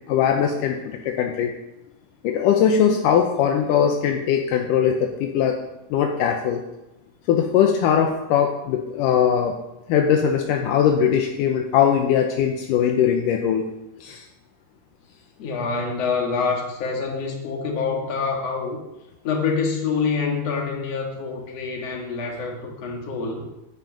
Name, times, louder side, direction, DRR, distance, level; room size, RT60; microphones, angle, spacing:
voice 1, 0.1-1.5 2.2-5.6 5.9-6.6 7.3-9.5 9.9-13.6 14.0-14.2, left 8 dB, 80° left, 3 dB, 2.0 m, -20 dB
voice 2, 15.4-18.8 19.2-23.4, left 5 dB, 50° left, 1 dB, 2.4 m, -26 dB
10.5 x 9.2 x 5.2 m, 0.93 s
omnidirectional pair, 4.6 m